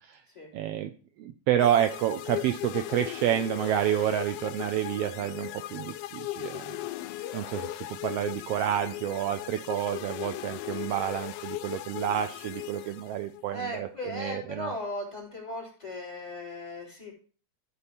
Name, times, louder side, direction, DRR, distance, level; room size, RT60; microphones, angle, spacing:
voice 1, 0.5-0.9 1.2-6.8 7.3-14.7, right 11 dB, 85° right, 8 dB, 1.3 m, -29 dB
sound 1, 1.6-13.4, left 14 dB, 85° left, 1.4 m, -38 dB
voice 2, 13.5-17.1, left 1 dB, 15° left, -4 dB, 3.4 m, -37 dB
13.0 x 4.3 x 5.2 m, 0.40 s
omnidirectional pair, 3.4 m